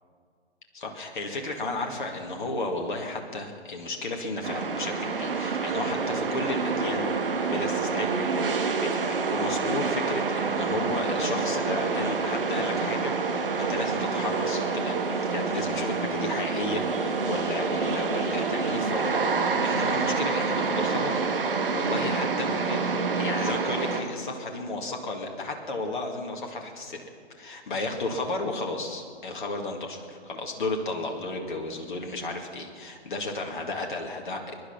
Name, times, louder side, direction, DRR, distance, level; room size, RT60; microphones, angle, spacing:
voice 1, 0.7-7.1 7.4-21.2 21.7-27.1 27.4-34.5, left 2 dB, 45° left, 2 dB, 2.0 m, -33 dB
sound 1, 4.4-24.0, right 4 dB, 55° right, 1.6 m, -27 dB
21.5 x 11.0 x 5.8 m, 2.1 s
figure-of-eight pair, 140°, 33 cm